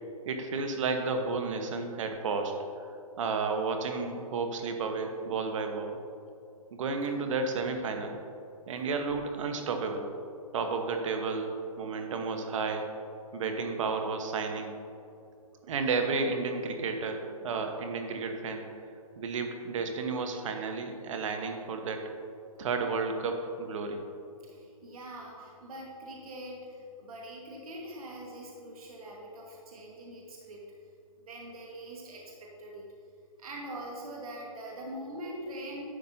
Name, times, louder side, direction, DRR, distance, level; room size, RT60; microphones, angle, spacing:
voice 1, 0.2-2.6 3.2-6.0 6.7-8.2 8.7-10.1 10.5-12.9 13.3-14.8 15.6-18.7 19.2-22.0 22.6-24.0, right 4 dB, 60° right, 5 dB, 1.2 m, -32 dB
voice 2, 24.4-30.6 31.3-32.8 33.4-35.8, right 1 dB, 75° right, -2 dB, 1.7 m, -43 dB
11.5 x 7.3 x 2.8 m, 2.6 s
hypercardioid pair, 145°, 19 cm